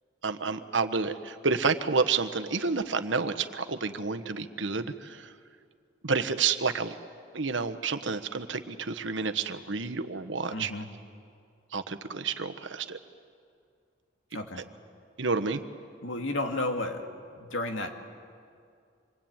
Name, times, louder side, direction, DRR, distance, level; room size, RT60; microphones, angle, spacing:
voice 1, 0.2-5.3 6.0-6.9 7.3-10.7 11.7-13.0 15.2-15.6, right 4 dB, 70° right, 9 dB, 1.2 m, -29 dB
voice 2, 10.5-10.9 14.3-14.7 16.0-17.1 17.4-17.9, left 2 dB, 85° left, 4 dB, 2.4 m, -32 dB
27.0 x 22.5 x 9.0 m, 2.3 s
head